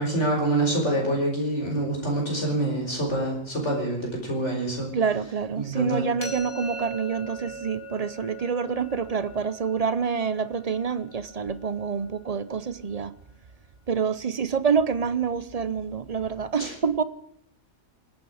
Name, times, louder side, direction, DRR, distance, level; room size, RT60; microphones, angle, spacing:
voice 1, 0.0-4.9 5.6-6.0 16.6-16.7, right 1 dB, 55° left, 5.3 m, -26 dB
voice 2, 4.9-13.1 13.9-17.0, right 6 dB, 40° right, 0.6 m, -27 dB
sound 1, 6.2-12.0, right 2 dB, 85° left, 3.5 m, -41 dB
28.0 x 9.7 x 4.9 m
omnidirectional pair, 1.4 m